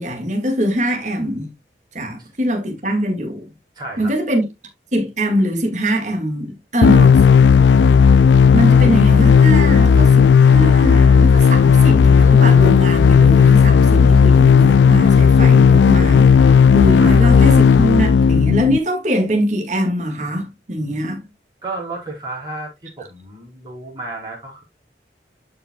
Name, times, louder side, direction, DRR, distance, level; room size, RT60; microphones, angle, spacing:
voice 1, 0.0-1.5 1.9-3.4 4.0-4.4 4.9-7.2 8.5-21.2, equal, 40° right, 2.0 m, -22 dB
voice 2, 3.7-4.1 17.0-17.3 21.6-22.7 23.0-24.6, right 2 dB, 25° right, 4.5 m, -32 dB
sound 1, 6.8-18.8, left 6 dB, 85° left, 0.3 m, -11 dB
12.0 x 5.7 x 2.3 m
head